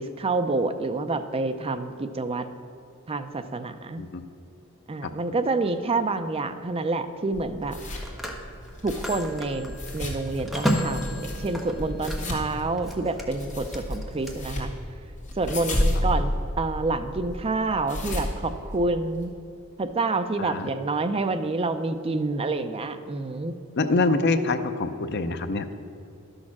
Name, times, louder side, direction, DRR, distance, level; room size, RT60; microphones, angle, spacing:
voice 1, 0.0-2.5 3.1-4.0 4.9-7.8 8.8-14.7 15.4-19.3 19.8-23.5, right 3 dB, 25° right, 9 dB, 0.5 m, -28 dB
Telephone, 5.5-5.7 7.6-12.5 12.8-14.3, equal, ahead, 1.0 m, -33 dB
sound 1, 7.3-19.2, left 1 dB, 35° left, 2.2 m, -32 dB
voice 2, 20.4-20.7 23.8-25.7, left 3 dB, 55° left, 9 dB, 0.6 m, -25 dB
12.0 x 6.4 x 6.0 m, 2.8 s
head